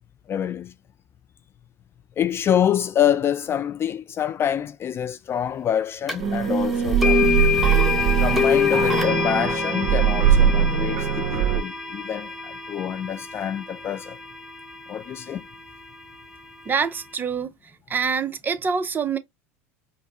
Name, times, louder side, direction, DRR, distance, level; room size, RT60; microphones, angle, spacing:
voice 1, 0.3-0.7 2.2-7.3 8.2-14.2 14.9-15.5, left 9 dB, 35° left, 0.4 m, -26 dB
sound 1, 6.1-6.2 7.0-15.0, left 6 dB, 5° right, 1.1 m, -26 dB
sound 2, 6.2-11.6, right 8 dB, 50° right, 1.0 m, -21 dB
voice 2, 16.7-17.5 17.9-19.2, right 6 dB, 25° right, 0.5 m, -25 dB
5.1 x 2.0 x 2.7 m
hypercardioid pair, 95°, 8 cm